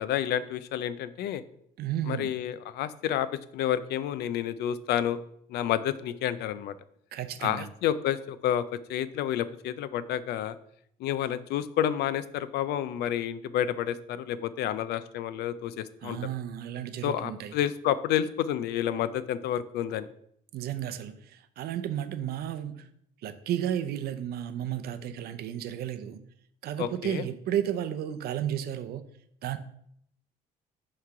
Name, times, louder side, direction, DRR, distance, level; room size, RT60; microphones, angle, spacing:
voice 1, 0.0-1.4 2.1-3.3 3.5-5.2 5.5-6.7 7.4-8.6 8.9-10.6 11.0-16.2 17.0-20.1 26.8-27.2, left 10 dB, 75° left, 15 dB, 0.4 m, -29 dB
voice 2, 1.8-2.3 7.1-7.7 16.0-17.5 20.5-22.9 23.2-26.2 26.6-29.0 29.4-29.6, right 10 dB, 65° right, 10 dB, 0.6 m, -33 dB
5.8 x 3.2 x 5.6 m, 0.70 s
cardioid pair, 110°, 17 cm